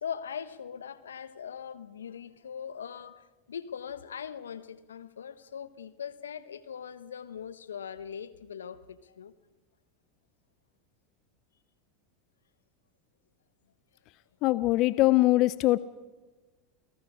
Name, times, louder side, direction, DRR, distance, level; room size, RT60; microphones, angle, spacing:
voice 1, 0.0-9.3, left 7 dB, 80° left, 1.0 m, -41 dB
voice 2, 14.4-15.8, left 18 dB, 50° left, 0.6 m, -22 dB
29.0 x 18.0 x 4.9 m
hypercardioid pair, 85°, 0 cm